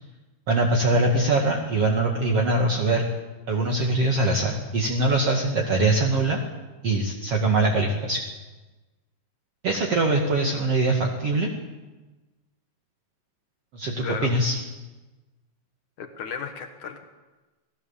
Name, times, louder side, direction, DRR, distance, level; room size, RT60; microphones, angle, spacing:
voice 1, 0.5-3.0 3.5-6.4 6.8-8.2 9.6-11.5 13.7-14.6, right 2 dB, 50° right, 0 dB, 1.9 m, -22 dB
voice 2, 16.0-17.0, left 6 dB, 80° left, 5 dB, 1.7 m, -34 dB
28.0 x 19.0 x 7.3 m, 1.2 s
omnidirectional pair, 5.8 m